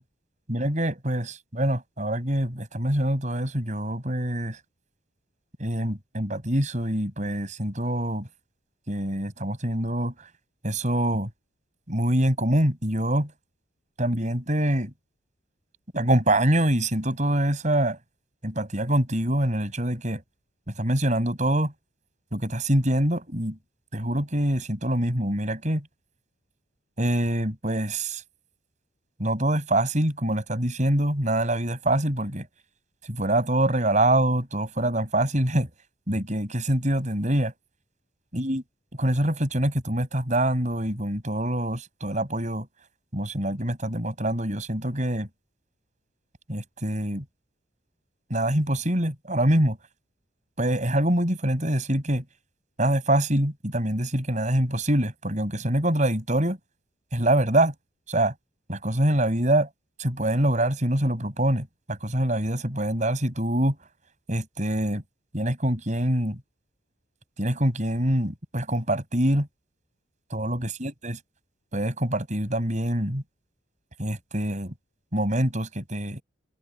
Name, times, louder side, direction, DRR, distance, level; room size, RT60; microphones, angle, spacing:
voice 1, 0.5-4.6 5.6-8.3 8.9-10.3 10.6-11.3 11.9-13.3 14.0-14.9 15.9-18.0 18.4-20.2 20.7-21.7 22.3-23.6 23.9-25.9 27.0-28.2 29.2-32.5 33.1-35.7 36.1-37.5 38.3-38.6 39.0-42.7 43.1-45.3 46.5-47.2 48.3-49.8 50.6-52.2 52.8-56.6 57.1-57.7 58.1-58.3 58.7-59.7 60.0-63.8 64.3-65.0 65.3-66.4 67.4-69.5 70.3-71.2 71.7-73.2 74.0-74.7 75.1-76.2, right 1 dB, 35° right, 7.2 m, -25 dB
open air
head